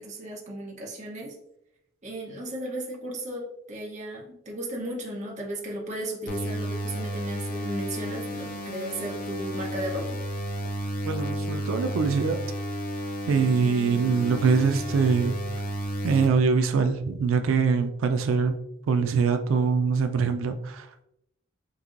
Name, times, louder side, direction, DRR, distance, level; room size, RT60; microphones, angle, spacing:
voice 1, 0.0-1.4 2.0-10.2, right 1 dB, 35° right, -3 dB, 0.8 m, -35 dB
sound 1, 6.3-16.3, equal, 45° left, 0.5 m, -32 dB
voice 2, 11.1-12.4 13.3-15.4 16.0-18.6 18.9-20.9, right 5 dB, 85° right, 8 dB, 0.4 m, -23 dB
5.3 x 2.6 x 2.5 m, 0.80 s
head